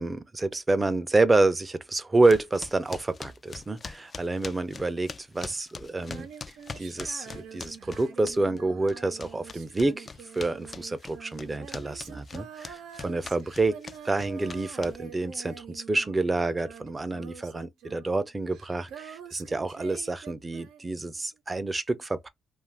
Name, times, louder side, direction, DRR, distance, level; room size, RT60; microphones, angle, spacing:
voice 1, 0.0-6.3 6.8-10.1 10.3-22.3, right 2 dB, 20° right, 0.5 m, -28 dB
sound 1, 2.2-8.6 8.9-15.2, left 4 dB, 35° left, 0.3 m, -42 dB
Female singing, 6.0-16.3 16.6-21.0, right 8 dB, 85° right, 0.7 m, -46 dB
2.5 x 2.4 x 3.3 m
cardioid pair, 90°, 0 cm